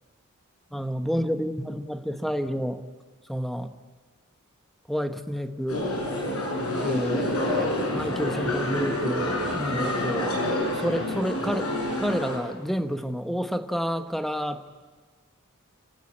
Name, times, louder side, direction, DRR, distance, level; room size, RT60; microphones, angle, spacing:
voice 1, 0.7-2.8 3.3-3.7 4.9-5.8 6.8-10.4 10.7-11.7 12.0-14.6, equal, ahead, 7 dB, 1.2 m, -29 dB
sound 1, 5.7-12.4, left 1 dB, 75° left, 7.3 m, -28 dB
28.0 x 16.5 x 9.7 m, 1.4 s
head